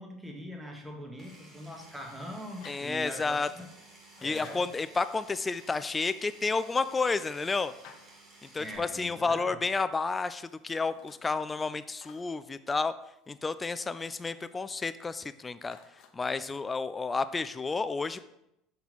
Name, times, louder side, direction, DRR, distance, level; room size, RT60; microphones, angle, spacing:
voice 1, 0.0-3.7 4.2-4.7 8.6-9.6, equal, 5° right, 1 dB, 1.2 m, -42 dB
Power tool, 1.2-8.8, right 2 dB, 30° right, 1.8 m, -55 dB
sound 1, 2.6-3.5 4.1-4.8 6.0-8.7 10.2-11.6 11.9-12.3 13.5-14.6 15.7-16.1, left 7 dB, 60° left, 0.7 m, -56 dB
voice 2, 2.7-3.5 4.2-7.7 8.4-12.9 13.3-15.8 16.1-18.2, left 4 dB, 20° left, 13 dB, 0.3 m, -31 dB
5.5 x 4.5 x 4.0 m, 0.83 s
supercardioid pair, 115°, 0 cm